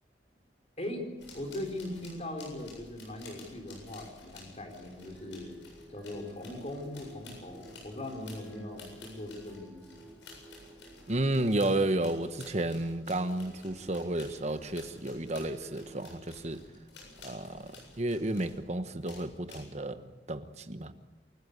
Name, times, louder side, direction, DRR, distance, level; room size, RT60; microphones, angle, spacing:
sound 1, 1.2-18.6 19.0-19.7, left 3 dB, 90° left, 7.8 m, -53 dB
voice 1, 1.3-5.5 5.9-10.1, left 1 dB, 35° left, 3 dB, 4.2 m, -40 dB
sound 2, 4.6-16.2, right 1 dB, ahead, 2.1 m, -55 dB
voice 2, 11.1-16.6 17.2-20.9, right 1 dB, 35° right, 9 dB, 1.2 m, -32 dB
28.0 x 14.5 x 8.2 m, 1.1 s
head